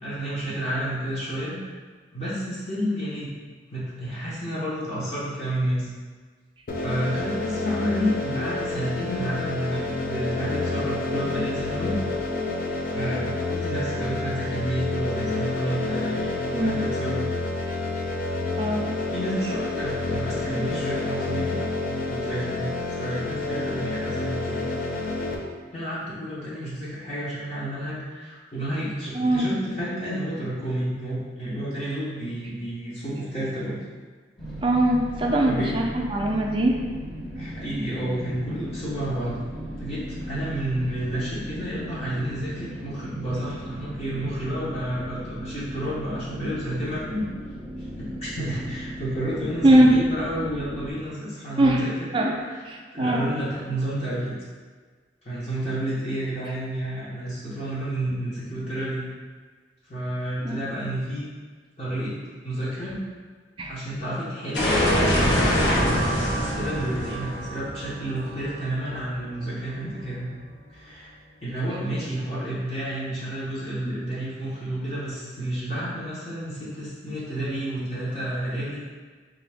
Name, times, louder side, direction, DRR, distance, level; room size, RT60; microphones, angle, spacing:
voice 1, 0.0-1.5 2.1-3.3 3.7-5.9 6.8-12.0 12.9-17.3 19.1-21.5 22.0-24.7 25.7-33.8 35.4-35.7 37.3-39.4 39.8-47.3 47.8-51.9 52.4-52.6 52.9-54.3 55.2-59.0 59.9-61.3 61.8-62.1 62.4-63.0 63.7-70.3 70.7-71.1 71.4-78.8, right 1 dB, 35° left, -10 dB, 0.9 m, -30 dB
sound 1, 6.7-25.3, left 3 dB, 50° left, 0.5 m, -29 dB
voice 2, 16.5-16.9 18.6-18.9 29.1-29.5 34.6-35.8 36.1-36.8 49.6-49.9 51.6-51.8 52.1-52.4 52.7-53.3 60.4-60.5 63.6-63.7, right 1 dB, 30° right, -1 dB, 0.4 m, -21 dB
sound 2, 34.4-50.9, equal, 5° left, 0.7 m, -37 dB
sound 3, 64.5-69.3, equal, 80° left, 0.9 m, -24 dB
3.8 x 2.7 x 3.4 m, 1.5 s
head